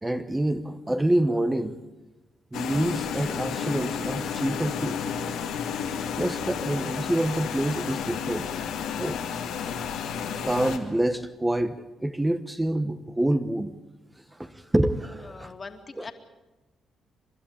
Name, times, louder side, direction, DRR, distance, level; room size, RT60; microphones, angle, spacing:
voice 1, 0.0-1.8 2.5-5.0 6.2-8.5 9.0-9.2 10.4-13.8 14.4-15.5 16.0-16.1, right 1 dB, 15° right, 8 dB, 1.1 m, -27 dB
sound 1, 2.5-10.8, left 7 dB, 85° left, 2.3 m, -32 dB
voice 2, 15.2-16.1, left 4 dB, 35° left, 6 dB, 2.4 m, -41 dB
29.5 x 12.0 x 8.8 m, 1.1 s
cardioid pair, 70°, 0 cm